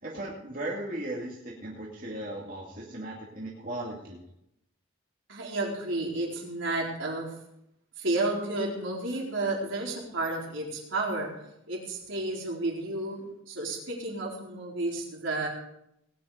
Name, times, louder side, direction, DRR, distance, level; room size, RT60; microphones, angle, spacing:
voice 1, 0.0-4.2, right 1 dB, 40° right, -4 dB, 2.3 m, -37 dB
voice 2, 5.3-7.3 8.0-11.3 11.7-15.5, right 2 dB, 70° right, -2 dB, 4.2 m, -31 dB
19.0 x 9.8 x 5.0 m, 0.79 s
head